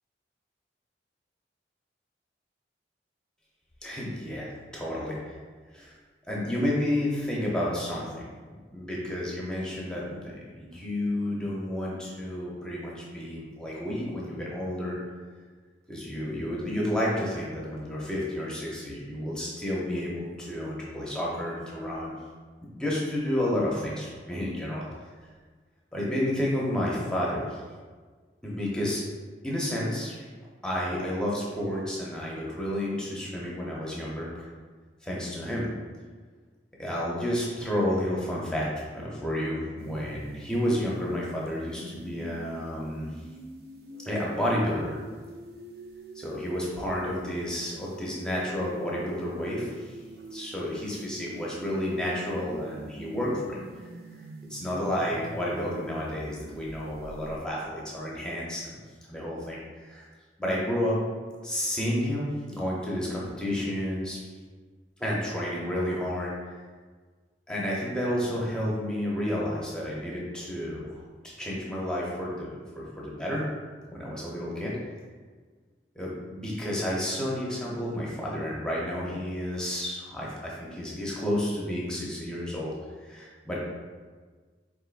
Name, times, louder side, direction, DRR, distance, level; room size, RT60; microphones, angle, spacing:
voice 1, 3.8-5.4 5.7-5.9 6.3-8.3 8.7-15.0 15.9-22.1 22.6-24.9 25.9-27.6 28.4-29.0 29.4-30.3 30.6-34.5 35.0-35.7 36.8-43.1 44.0-45.0 46.1-50.0 50.3-53.6 54.5-58.7 59.1-60.1 60.4-61.0 61.4-64.2 65.0-66.3 67.5-73.4 73.9-74.7 76.0-83.6, left 1 dB, 5° left, -5 dB, 0.7 m, -31 dB
sound 1, 39.8-57.4, right 2 dB, 60° right, 0.5 m, -45 dB
4.3 x 3.4 x 2.4 m, 1.5 s
head